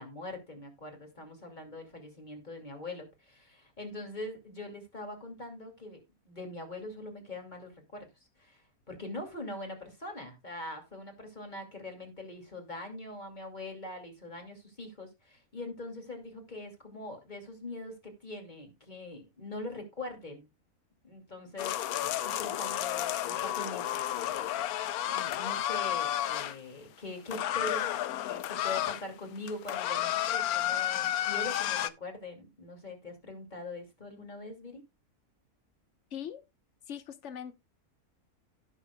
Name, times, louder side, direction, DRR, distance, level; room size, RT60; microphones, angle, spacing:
voice 1, 0.0-6.0 6.3-8.1 8.4-20.5 21.0-28.0 28.2-34.8, left 2 dB, 30° left, 2.7 m, -43 dB
sound 1, 21.6-26.5 27.3-29.0 29.4-31.9, left 12 dB, 80° left, 1.1 m, -31 dB
voice 2, 36.1-36.4 36.9-37.5, left 9 dB, 55° left, 1.3 m, -40 dB
16.5 x 6.5 x 2.3 m
omnidirectional pair, 1.5 m